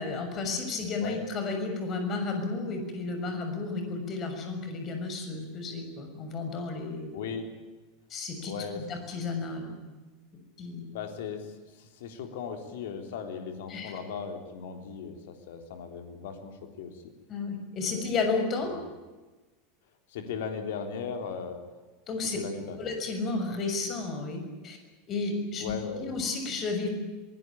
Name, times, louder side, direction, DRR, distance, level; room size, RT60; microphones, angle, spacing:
voice 1, 0.0-7.2 8.1-8.5 8.9-9.8 10.6-10.8 13.7-13.9 17.3-18.7 22.1-22.4 22.8-24.8 25.1-25.7 26.0-26.9, left 3 dB, 35° left, 5 dB, 6.5 m, -32 dB
voice 2, 7.1-7.5 8.4-8.8 10.9-17.0 17.9-18.1 18.6-18.8 20.1-21.6 22.3-22.9 25.6-26.1, left 6 dB, 60° left, 5 dB, 3.7 m, -37 dB
24.0 x 21.0 x 8.9 m, 1.2 s
figure-of-eight pair, 80°, 0 cm